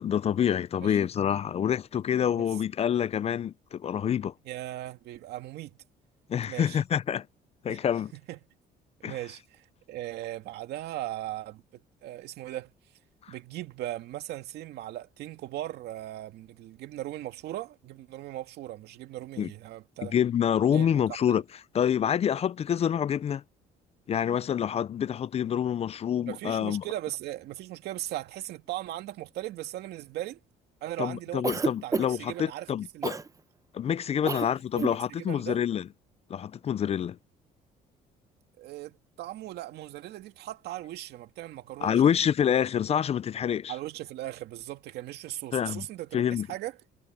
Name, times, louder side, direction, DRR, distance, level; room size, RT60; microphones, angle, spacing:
voice 1, 0.0-4.3 6.3-7.3 7.6-8.1 9.0-9.2 13.3-13.4 19.4-19.5 20.1-21.4 21.7-23.4 24.1-26.8 31.0-33.2 33.7-35.9 36.3-37.2 41.8-43.8 45.5-45.8 46.1-46.5, left 9 dB, 40° left, 0.5 m, -27 dB
voice 2, 4.5-5.7 6.5-6.8 7.7-7.8 8.1-8.4 9.0-12.7 13.3-20.2 20.7-21.0 21.3-21.4 26.2-30.4 30.8-32.7 32.9-33.1 34.2-34.4 34.7-35.6 38.6-42.2 43.7-46.7, right 14 dB, 75° right, 2.2 m, -38 dB
Cough, 31.4-32.3 33.0-33.3 34.3-34.5 34.7-35.0, right 4 dB, 20° right, 0.8 m, -29 dB
cardioid pair, 110°, 17 cm